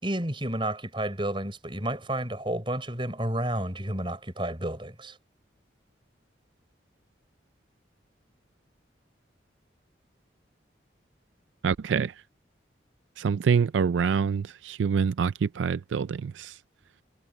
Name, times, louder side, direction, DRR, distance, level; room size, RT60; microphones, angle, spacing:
voice 1, 0.0-5.2, right 1 dB, 25° right, 5.1 m, -31 dB
voice 2, 11.6-12.1 13.2-16.5, right 6 dB, 85° right, 0.4 m, -26 dB
head